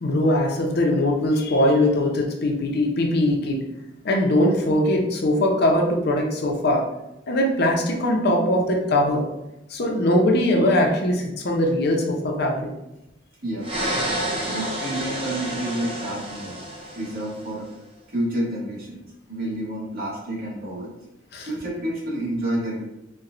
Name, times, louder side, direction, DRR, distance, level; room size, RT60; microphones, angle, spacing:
voice 1, 0.0-3.6 4.0-6.8 7.3-9.2 9.7-12.7 21.3-21.5, left 1 dB, 55° left, 1 dB, 0.6 m, -21 dB
sound 1, 13.6-17.5, right 1 dB, 30° right, 0.6 m, -29 dB
voice 2, 14.5-16.6 16.9-17.7 18.1-20.9 21.5-22.8, right 1 dB, 50° right, -5 dB, 1.1 m, -29 dB
4.2 x 2.2 x 2.5 m, 0.90 s
head